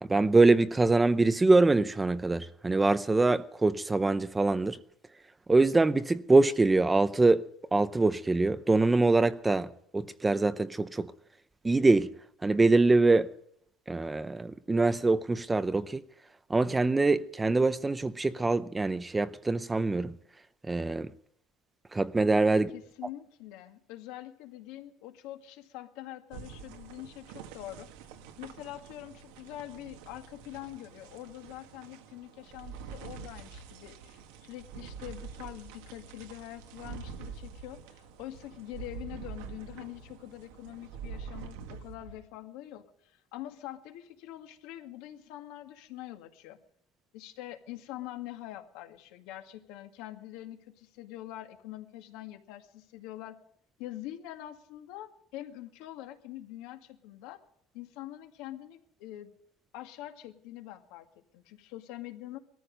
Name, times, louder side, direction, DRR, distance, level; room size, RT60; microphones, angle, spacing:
voice 1, 0.0-4.8 5.5-11.1 11.6-12.1 12.4-13.3 13.9-16.0 16.5-20.2 20.7-21.1 21.9-22.7, right 3 dB, 10° right, 0.6 m, -24 dB
voice 2, 22.5-27.9 28.4-46.6 47.1-53.4 53.8-57.4 57.7-59.3 59.7-62.4, left 14 dB, 70° left, 2.0 m, -44 dB
sound 1, 26.3-42.2, right 6 dB, 85° right, 2.0 m, -46 dB
19.5 x 14.0 x 5.3 m
cardioid pair, 145°, 0 cm